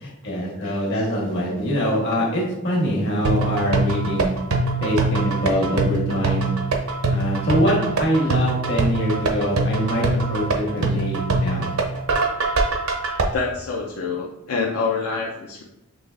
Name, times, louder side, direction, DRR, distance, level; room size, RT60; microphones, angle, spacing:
voice 1, 0.0-4.4 4.8-6.5 7.1-11.7, equal, 55° left, -3 dB, 1.3 m, -24 dB
voice 2, 0.6-1.0 13.3-15.6, left 4 dB, 75° left, -2 dB, 0.5 m, -27 dB
sound 1, 3.2-13.2, right 3 dB, 75° right, 0.6 m, -23 dB
6.1 x 3.1 x 2.4 m, 0.92 s
head